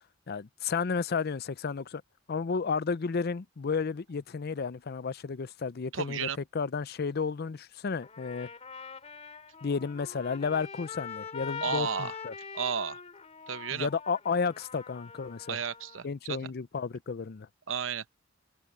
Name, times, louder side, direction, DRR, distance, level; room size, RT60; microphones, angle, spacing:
voice 1, 0.3-2.0 2.3-8.5 9.6-12.3 13.7-15.6 16.0-17.5, left 5 dB, 55° left, 0.5 m, -32 dB
voice 2, 5.9-6.4 11.6-12.2 12.5-13.0 13.5-13.9 15.5-16.5 17.7-18.0, right 6 dB, 75° right, 0.9 m, -33 dB
Trumpet, 8.0-16.0, left 6 dB, 35° left, 2.5 m, -43 dB
head